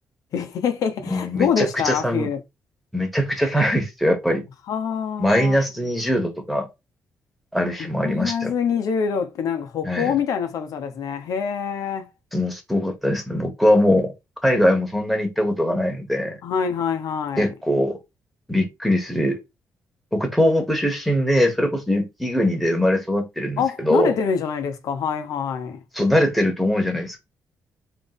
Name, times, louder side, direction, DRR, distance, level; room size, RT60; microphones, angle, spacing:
voice 1, 0.3-2.4 4.7-5.6 7.8-12.1 16.4-17.5 23.6-25.8, left 7 dB, 75° left, 0.9 m, -25 dB
voice 2, 1.1-2.3 2.9-4.4 5.2-6.7 7.5-8.5 9.8-10.1 12.3-14.1 14.4-16.4 17.4-18.0 18.5-19.4 20.1-24.1 25.9-27.2, left 1 dB, ahead, 1.4 m, -21 dB
3.5 x 3.2 x 4.0 m
cardioid pair, 110°, 6 cm